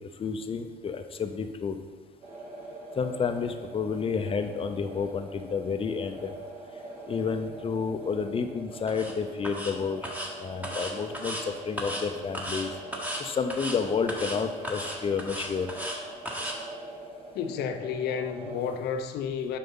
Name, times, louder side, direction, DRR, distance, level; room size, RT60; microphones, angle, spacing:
voice 1, 0.0-1.8 3.0-6.3 7.1-12.7 13.2-15.7, left 5 dB, 35° left, 8 dB, 0.7 m, -30 dB
sound 1, 2.2-18.7, right 2 dB, 50° right, 2.2 m, -43 dB
sound 2, 8.9-9.1 9.4-9.7 10.0-10.3 10.6-11.4 11.8-12.0 12.3-12.6 12.9-13.2 13.5-13.8 14.1-14.4 14.6-16.0 16.3-16.5, equal, 10° right, 1.4 m, -35 dB
voice 2, 17.3-19.6, left 7 dB, 75° left, 8 dB, 0.7 m, -31 dB
7.9 x 5.6 x 5.5 m, 1.4 s
cardioid pair, 110°, 17 cm